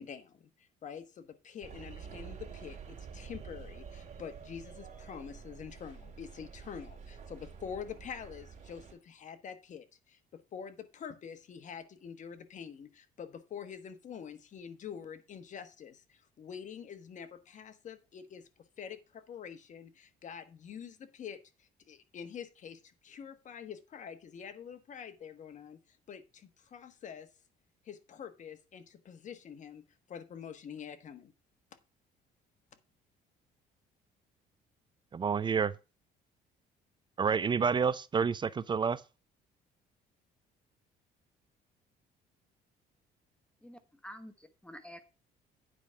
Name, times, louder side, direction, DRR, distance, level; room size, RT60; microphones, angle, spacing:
voice 1, 0.0-18.5 18.8-27.3 27.8-29.8 30.1-31.3, left 7 dB, 45° left, 1.3 m, -46 dB
sound 1, 1.6-8.9, right 6 dB, 45° right, 3.4 m, -48 dB
voice 2, 35.1-35.7 37.2-39.0, right 6 dB, 25° right, 0.5 m, -29 dB
voice 3, 43.6-45.1, equal, 5° left, 1.0 m, -49 dB
9.3 x 4.9 x 5.6 m
cardioid pair, 110°, 17 cm